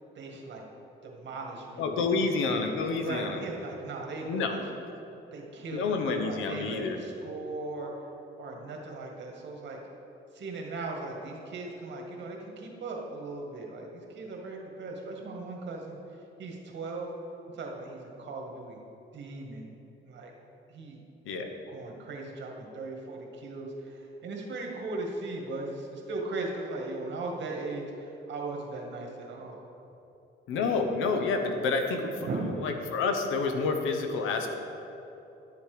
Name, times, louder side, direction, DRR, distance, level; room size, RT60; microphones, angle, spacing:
voice 1, 0.1-0.6 1.0-2.3 3.0-4.6 5.3-7.9 8.4-9.8 10.3-16.0 16.4-17.1 17.5-18.8 19.1-19.7 20.0-20.3 20.7-21.0 21.7-29.6 32.2-32.6, right 3 dB, 65° right, 0 dB, 1.9 m, -38 dB
voice 2, 1.8-3.4 4.2-4.6 5.7-7.0 21.3-21.5 30.5-32.1 32.6-34.5, left 4 dB, 90° left, 5 dB, 1.0 m, -28 dB
11.5 x 7.1 x 5.0 m, 3.0 s
cardioid pair, 90°, 20 cm